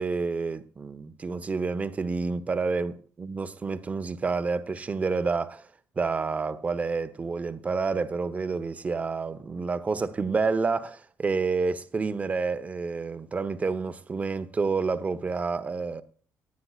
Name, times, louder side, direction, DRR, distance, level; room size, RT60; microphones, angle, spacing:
voice 1, 0.0-5.7 6.0-16.0, right 4 dB, 25° right, 1.1 m, -29 dB
18.0 x 12.0 x 2.5 m
cardioid pair, 130°, 6 cm